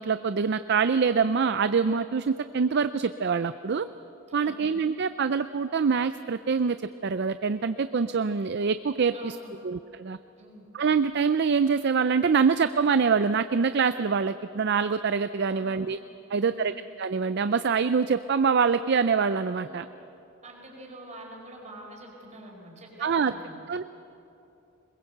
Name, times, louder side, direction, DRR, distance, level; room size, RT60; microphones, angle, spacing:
voice 1, 0.0-3.9 4.3-6.8 7.0-9.4 9.6-10.2 10.7-16.0 16.3-19.9 23.0-23.3 23.7-23.8, right 5 dB, 50° right, 12 dB, 0.4 m, -25 dB
voice 2, 4.3-4.7 9.1-9.6 10.4-10.6 15.5-15.9 16.3-16.7 19.6-19.7 20.4-23.5, right 1 dB, 35° right, -1 dB, 4.8 m, -46 dB
21.5 x 21.5 x 7.9 m, 2.9 s
head